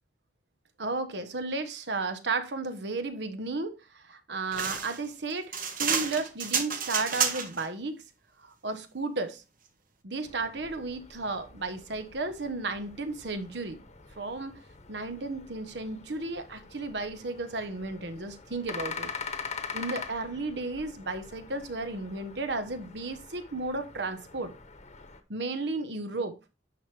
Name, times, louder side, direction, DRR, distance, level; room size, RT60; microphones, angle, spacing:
voice 1, 0.8-5.5 5.8-8.0 8.4-9.4 10.0-13.8 14.2-14.6 14.9-19.1 19.7-24.5 25.3-26.4, right 3 dB, 70° right, 1.2 m, -33 dB
sound 1, 4.5-7.7, right 6 dB, 50° right, 1.3 m, -30 dB
sound 2, 10.2-25.2, left 5 dB, 40° left, 1.1 m, -44 dB
10.0 x 6.1 x 3.4 m
head